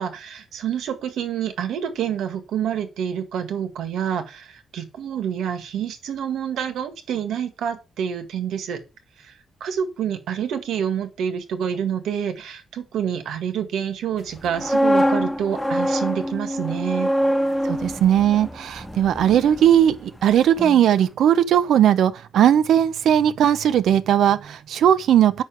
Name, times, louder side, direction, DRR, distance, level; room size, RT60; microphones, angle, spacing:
voice 1, 0.0-8.8 9.6-17.1, right 8 dB, 85° right, 1.9 m, -27 dB
sound 1, 14.3-20.3 20.6-20.8, equal, ahead, 0.8 m, -24 dB
voice 2, 17.6-25.4, right 10 dB, 70° right, 0.7 m, -18 dB
8.5 x 6.3 x 4.9 m
cardioid pair, 170°, 0 cm